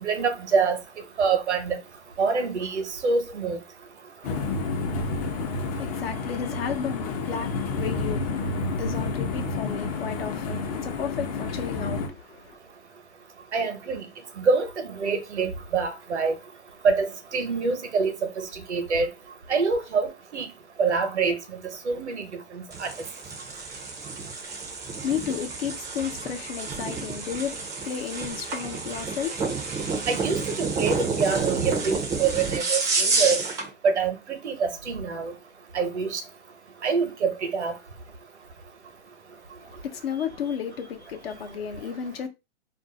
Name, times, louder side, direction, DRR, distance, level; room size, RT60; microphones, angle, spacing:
voice 1, 0.0-0.8 1.2-1.8 2.2-3.6 13.5-14.1 14.4-16.3 16.8-19.1 19.5-20.5 20.8-21.6 21.8-22.9 30.1-33.4 33.8-35.3 35.7-36.2 36.8-37.7, right 5 dB, 85° right, 1.0 m, -26 dB
sound 1, 4.2-12.1, left 3 dB, 35° left, 0.6 m, -30 dB
voice 2, 5.6-12.6 24.9-29.8 39.6-42.3, left 8 dB, 60° left, 0.8 m, -33 dB
sound 2, 22.7-33.7, right 4 dB, 10° right, 0.5 m, -29 dB
2.6 x 2.0 x 3.9 m
hypercardioid pair, 130°, 33 cm